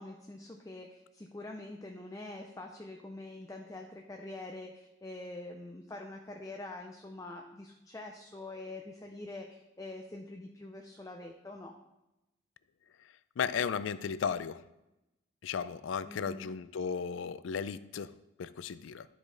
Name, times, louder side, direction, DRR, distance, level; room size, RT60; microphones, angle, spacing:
voice 1, 0.0-11.7 16.0-16.5, left 2 dB, 15° left, 2 dB, 0.5 m, -45 dB
voice 2, 13.4-14.6 15.4-19.1, left 6 dB, 85° left, 15 dB, 0.4 m, -35 dB
11.5 x 5.0 x 3.9 m, 0.94 s
head